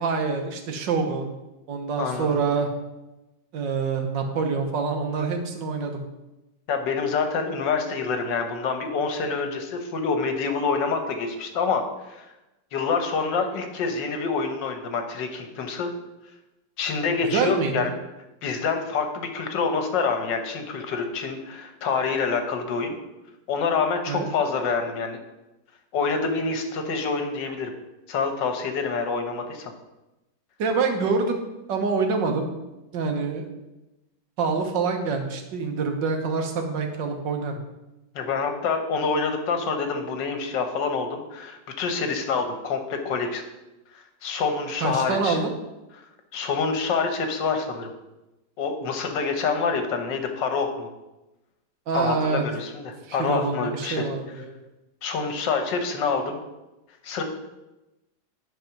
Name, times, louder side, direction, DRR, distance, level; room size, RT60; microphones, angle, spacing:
voice 1, 0.0-1.3 1.7-2.7 3.5-6.0 17.2-17.9 24.1-24.3 30.6-32.5 32.9-33.5 34.4-37.6 44.8-45.5 51.9-52.4 53.1-54.5, right 4 dB, 80° right, 5 dB, 1.7 m, -26 dB
voice 2, 2.0-2.4 6.7-12.3 12.7-15.9 16.8-17.9 18.4-22.9 23.5-25.2 25.9-27.7 28.1-29.7 38.1-43.4 44.2-45.4 46.0-46.1 46.3-47.9 48.6-50.9 51.9-54.1 55.0-56.4 57.0-57.2, left 5 dB, 80° left, 6 dB, 1.7 m, -26 dB
10.5 x 4.2 x 5.9 m, 1.0 s
omnidirectional pair, 1.9 m